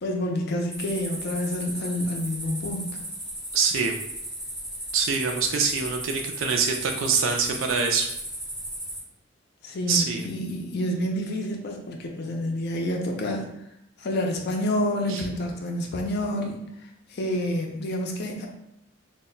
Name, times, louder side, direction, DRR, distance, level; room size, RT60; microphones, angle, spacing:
voice 1, 0.0-2.9 9.6-13.5 14.0-16.6 17.1-18.5, left 1 dB, 55° left, 1 dB, 0.5 m, -28 dB
sound 1, 0.7-9.0, right 1 dB, 5° right, 0.6 m, -36 dB
voice 2, 3.5-4.0 4.9-8.1 9.9-10.3 15.1-15.2, right 5 dB, 80° right, 3 dB, 0.3 m, -25 dB
2.2 x 2.0 x 3.8 m, 0.79 s
head